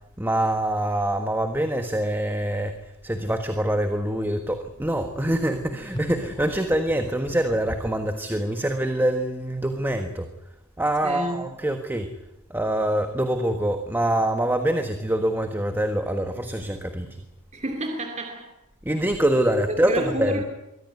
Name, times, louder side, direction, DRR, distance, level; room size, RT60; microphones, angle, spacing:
voice 1, 0.2-2.8 3.0-10.3 10.8-12.1 12.5-17.2 18.8-20.4, right 1 dB, 10° right, 6 dB, 1.4 m, -25 dB
sound 1, 5.9-8.1, equal, 20° left, 2.2 m, -38 dB
voice 2, 11.0-11.5 17.5-18.5 19.9-20.4, right 1 dB, 30° right, 3 dB, 2.8 m, -29 dB
23.5 x 16.5 x 9.6 m, 0.89 s
head